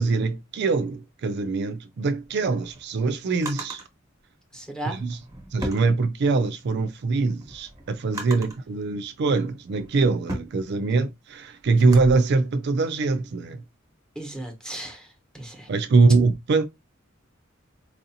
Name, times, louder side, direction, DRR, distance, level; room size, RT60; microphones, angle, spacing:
voice 1, 0.0-3.8 4.9-5.2 5.5-13.6 15.7-16.6, right 3 dB, 55° right, 0.4 m, -23 dB
Drawer open or close, 2.2-3.9 4.9-6.5 7.0-8.7 9.3-12.1, right 1 dB, 15° right, 1.2 m, -37 dB
voice 2, 4.5-5.0 14.1-15.7, right 1 dB, 5° left, 1.0 m, -36 dB
4.6 x 2.6 x 2.7 m
head